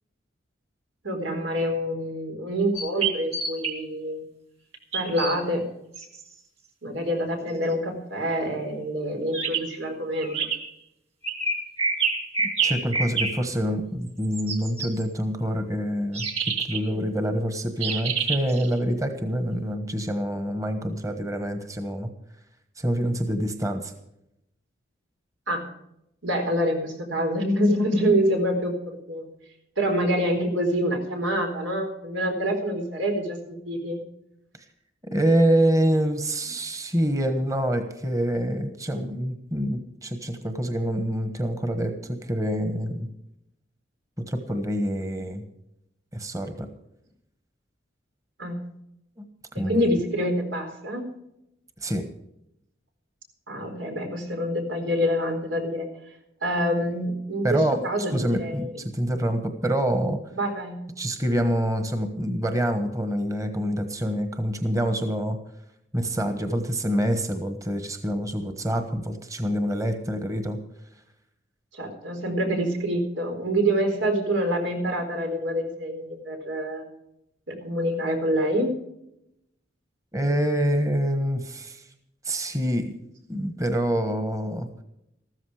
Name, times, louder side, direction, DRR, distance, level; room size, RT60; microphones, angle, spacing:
voice 1, 1.0-4.3 4.9-5.6 6.8-10.5 16.9-17.1 25.5-25.7 26.2-29.3 29.8-34.0 48.4-48.6 49.5-51.1 53.5-55.9 56.4-58.8 60.3-60.8 71.7-76.8 77.5-78.8, equal, 90° right, 3 dB, 4.2 m, -26 dB
sound 1, 2.7-3.7 4.9-5.3 5.9-6.2 9.3-9.7 10.2-10.6 11.2-13.3 14.1-15.0 16.1-16.8 17.8-18.7, right 5 dB, 35° right, 2.2 m, -27 dB
voice 2, 12.6-16.3 16.7-22.1 22.8-23.9 35.1-43.1 44.3-45.4 46.1-46.7 49.2-49.3 49.5-49.9 51.8-52.0 57.4-57.8 58.1-60.2 61.0-65.4 65.9-70.6 80.1-81.8 82.2-82.9 83.3-84.7, equal, 15° right, 7 dB, 1.3 m, -26 dB
14.5 x 13.5 x 4.9 m, 0.82 s
head